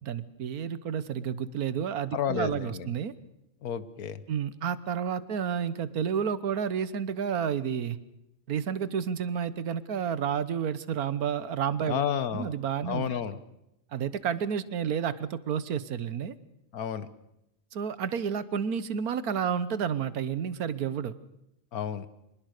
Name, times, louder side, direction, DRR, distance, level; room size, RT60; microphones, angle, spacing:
voice 1, 0.0-3.1 4.3-8.0 8.5-12.0 12.3-13.1 13.9-16.4 17.7-21.2, right 7 dB, 85° right, 15 dB, 1.6 m, -30 dB
voice 2, 2.1-2.9 3.6-4.2 11.9-12.5 12.8-13.4 16.7-17.1 21.7-22.1, left 8 dB, 85° left, 14 dB, 1.6 m, -31 dB
24.5 x 20.5 x 6.6 m, 0.87 s
omnidirectional pair, 1.5 m